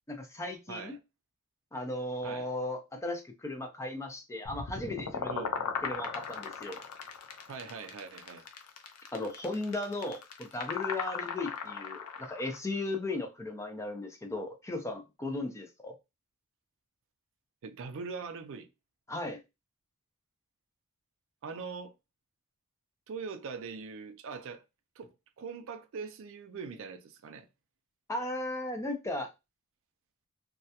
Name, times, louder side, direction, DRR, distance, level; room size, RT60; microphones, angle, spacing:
voice 1, 0.1-1.0 1.7-5.5 5.8-6.8 9.1-16.0 19.1-19.4 28.1-29.3, left 2 dB, 15° left, 0.3 m, -36 dB
voice 2, 0.7-1.0 2.2-2.5 5.3-5.6 7.5-8.4 17.6-18.7 21.4-21.9 23.1-24.6 25.0-27.5, right 5 dB, 60° right, 0.4 m, -42 dB
sound 1, 4.5-12.6, left 6 dB, 80° left, 0.5 m, -38 dB
2.2 x 2.1 x 2.7 m
head